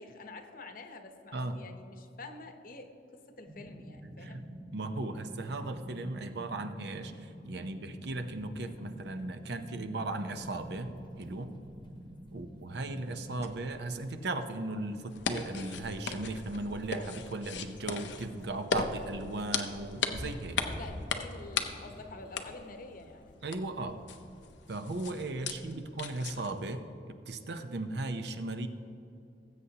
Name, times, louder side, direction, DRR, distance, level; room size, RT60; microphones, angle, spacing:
voice 1, 0.0-2.9 3.4-4.4 20.7-23.4 25.5-25.9, left 3 dB, 55° left, 6 dB, 0.9 m, -48 dB
voice 2, 1.3-1.6 4.0-11.5 12.3-20.7 23.4-24.0 24.7-28.7, right 2 dB, 65° right, 8 dB, 0.7 m, -37 dB
sound 1, 3.5-13.5, equal, 20° right, 0.8 m, -48 dB
sound 2, 8.3-24.7, equal, 25° left, 0.9 m, -50 dB
sound 3, 15.1-26.6, left 5 dB, 85° left, 0.7 m, -38 dB
19.5 x 8.0 x 2.9 m, 2.6 s
head